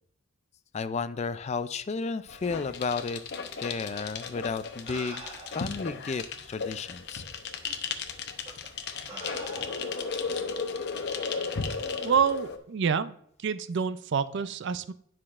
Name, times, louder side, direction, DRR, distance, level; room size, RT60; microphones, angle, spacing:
voice 1, 0.7-3.2 3.6-5.2 5.5-7.2, left 4 dB, 30° left, 13 dB, 0.3 m, -32 dB
sound 1, 2.3-12.6, left 5 dB, 55° left, 0.7 m, -35 dB
sound 2, 4.2-4.3 4.9-5.8 6.7-6.8 7.6-7.8 8.4-8.7 9.1-10.0 11.3-11.5, right 2 dB, 25° right, 1.2 m, -44 dB
voice 2, 12.0-13.1 13.4-14.9, right 6 dB, 55° right, 13 dB, 0.4 m, -27 dB
9.8 x 5.9 x 2.5 m, 0.66 s
head